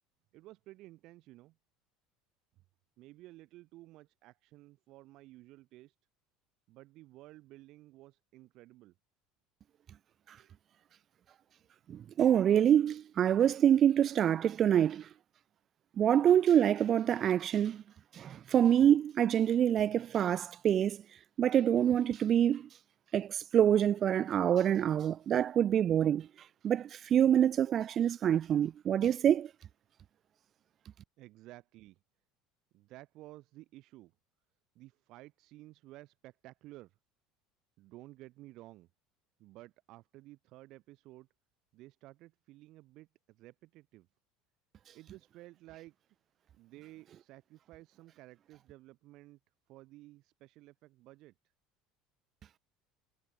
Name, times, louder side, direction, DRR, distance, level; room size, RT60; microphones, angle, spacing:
voice 1, 0.3-1.5 3.0-5.9 6.7-8.9 10.4-10.5 31.2-32.0 32.7-34.1 34.7-37.0 37.8-38.9 39.4-41.3 41.7-44.1 44.9-45.9 46.5-49.4 49.7-51.3, right 18 dB, 55° right, 6.6 m, -54 dB
voice 2, 11.9-15.1 16.0-17.8 18.1-21.0 21.4-22.7 23.1-26.3 26.6-29.5, right 9 dB, 35° right, 0.3 m, -26 dB
supercardioid pair, 130°, 0 cm